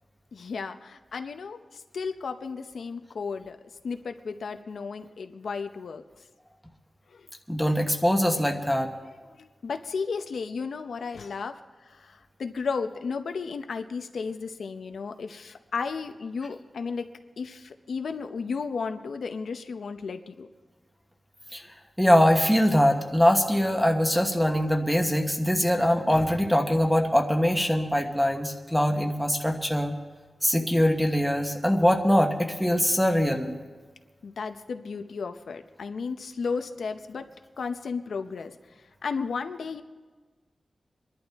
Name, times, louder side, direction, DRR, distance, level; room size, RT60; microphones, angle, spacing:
voice 1, 0.3-3.6 3.8-6.0 7.1-7.3 9.3-11.6 11.9-17.1 17.4-20.5 34.2-37.3 37.6-38.5 39.0-39.8, left 5 dB, 85° left, 7 dB, 0.7 m, -34 dB
voice 2, 7.5-8.9 21.5-21.6 22.0-29.9 30.4-33.6, equal, ahead, 2 dB, 1.2 m, -23 dB
24.5 x 11.5 x 3.5 m, 1.4 s
wide cardioid pair, 150°, 0 cm